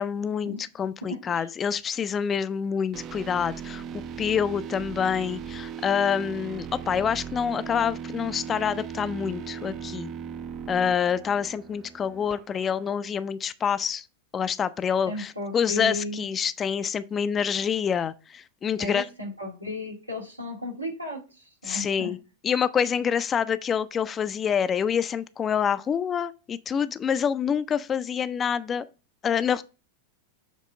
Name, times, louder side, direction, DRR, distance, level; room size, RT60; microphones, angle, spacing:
voice 1, 0.0-3.8 4.2-10.1 10.7-14.1 14.3-19.1 21.6-22.2 22.4-28.8 29.2-29.6, left 7 dB, 25° left, 0.4 m, -27 dB
sound 1, 2.9-12.9, right 7 dB, 30° right, 0.5 m, -38 dB
voice 2, 15.1-16.2 18.8-22.1, left 2 dB, 90° right, 2.2 m, -35 dB
7.3 x 3.6 x 5.2 m
figure-of-eight pair, 90°, 0 cm